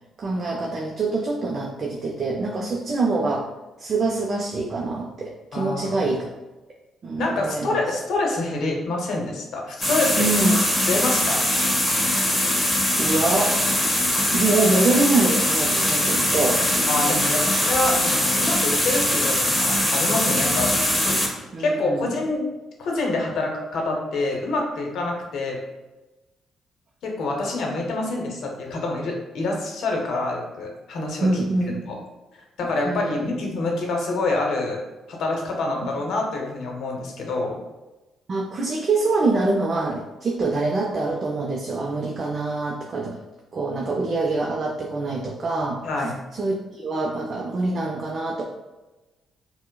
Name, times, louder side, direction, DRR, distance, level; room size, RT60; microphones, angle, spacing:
voice 1, 0.2-3.5 3.8-6.3 7.0-7.8 10.2-10.6 13.0-13.6 14.3-16.6 21.5-22.1 31.2-31.8 32.8-33.3 38.3-43.2 43.5-48.4, right 3 dB, 45° right, 0 dB, 0.4 m, -25 dB
voice 2, 5.5-6.2 7.2-10.3 10.9-11.4 16.9-20.7 21.0-21.2 21.6-22.5 22.8-25.6 27.0-31.4 31.9-32.0 32.6-34.8 35.1-37.6 45.8-46.1, left 2 dB, 75° left, 1 dB, 0.7 m, -26 dB
sound 1, 9.8-21.3, left 1 dB, 10° left, 0.7 m, -22 dB
4.4 x 2.0 x 2.2 m, 1.1 s
cardioid pair, 90°, 0 cm